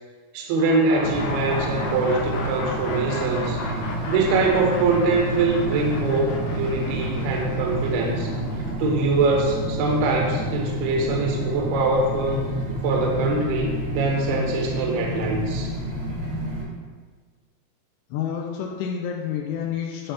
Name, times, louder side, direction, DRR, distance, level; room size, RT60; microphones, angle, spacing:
voice 1, 0.3-3.6 4.1-8.3 8.8-12.4 12.8-15.7, right 3 dB, 75° right, 0 dB, 2.6 m, -23 dB
sound 1, 0.6-10.4, left 3 dB, 75° left, 2.1 m, -36 dB
sound 2, 1.0-16.6, right 1 dB, 55° right, 1.4 m, -29 dB
voice 2, 18.1-20.1, left 8 dB, 90° left, -1 dB, 2.9 m, -29 dB
10.0 x 3.5 x 5.5 m, 1.5 s
omnidirectional pair, 5.0 m